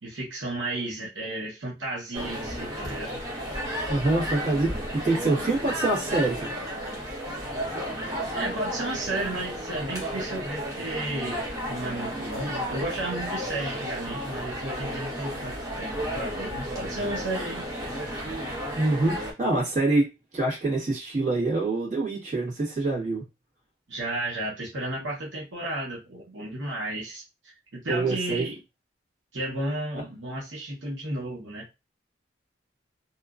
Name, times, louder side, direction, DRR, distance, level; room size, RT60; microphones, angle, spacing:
voice 1, 0.0-3.2 8.3-11.4 11.7-17.7 23.9-28.6 29.3-31.6, right 2 dB, 85° right, 1.0 m, -33 dB
sound 1, 2.1-19.3, equal, 20° right, 0.9 m, -33 dB
voice 2, 3.9-6.5 18.7-20.1 20.3-23.2 27.9-28.5, right 2 dB, 45° right, 1.5 m, -25 dB
2.8 x 2.4 x 2.4 m
head